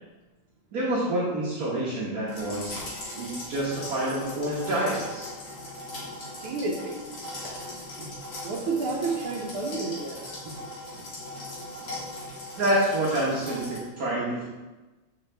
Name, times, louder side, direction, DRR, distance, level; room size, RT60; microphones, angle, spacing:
voice 1, 0.7-2.8 3.2-5.3 8.0-8.1 12.6-14.4, right 1 dB, 50° right, -6 dB, 1.5 m, -27 dB
sound 1, 2.3-13.8, left 1 dB, 55° left, 2.2 m, -39 dB
voice 2, 6.4-7.0 8.4-10.4, right 3 dB, 85° right, -3 dB, 1.7 m, -30 dB
7.8 x 5.1 x 3.3 m, 1.2 s
omnidirectional pair, 2.3 m